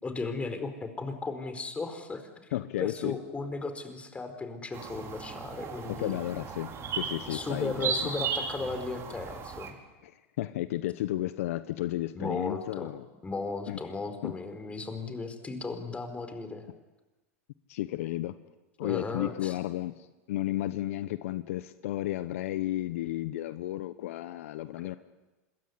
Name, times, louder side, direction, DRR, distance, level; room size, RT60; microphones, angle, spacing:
voice 1, 0.0-2.2 2.8-6.2 7.3-9.8 12.1-13.0 13.2-16.7 18.8-19.5, left 3 dB, 15° left, 8 dB, 4.6 m, -36 dB
voice 2, 2.5-3.2 5.9-7.9 10.0-13.0 13.7-13.8 14.2-14.3 17.7-18.4 18.8-25.0, left 14 dB, 75° left, 13 dB, 1.0 m, -33 dB
sound 1, 4.7-9.7, right 6 dB, 35° right, 4.9 m, -36 dB
26.5 x 22.0 x 9.6 m, 1.1 s
hypercardioid pair, 105°, 8 cm